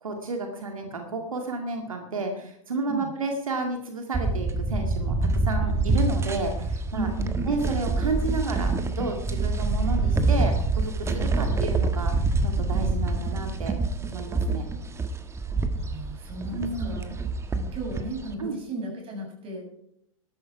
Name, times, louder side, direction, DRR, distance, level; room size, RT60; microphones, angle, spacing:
voice 1, 0.0-7.1 7.5-12.1 12.4-13.7 14.0-14.7 16.6-17.2 18.4-18.6, right 3 dB, 85° right, 4 dB, 2.1 m, -31 dB
sound 1, 4.1-18.3, right 3 dB, 15° right, 1.4 m, -26 dB
voice 2, 6.9-7.5 11.4-11.6 15.7-17.1 17.5-19.7, right 2 dB, 35° right, 1 dB, 7.0 m, -36 dB
13.5 x 12.5 x 4.7 m, 0.74 s
hypercardioid pair, 105°, 17 cm